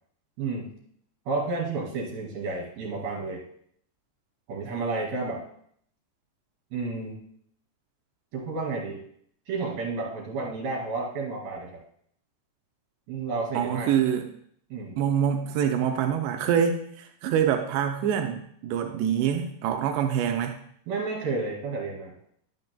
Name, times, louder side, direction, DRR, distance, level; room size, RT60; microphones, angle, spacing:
voice 1, 0.4-0.7 1.3-3.4 4.5-5.4 6.7-7.2 8.3-9.0 9.5-11.7 13.1-13.9 14.7-15.0 20.9-22.1, right 3 dB, 60° right, -2 dB, 3.7 m, -31 dB
voice 2, 13.5-14.3 15.0-20.6, right 8 dB, 90° right, 4 dB, 2.4 m, -25 dB
10.5 x 9.6 x 2.2 m, 0.65 s
omnidirectional pair, 5.4 m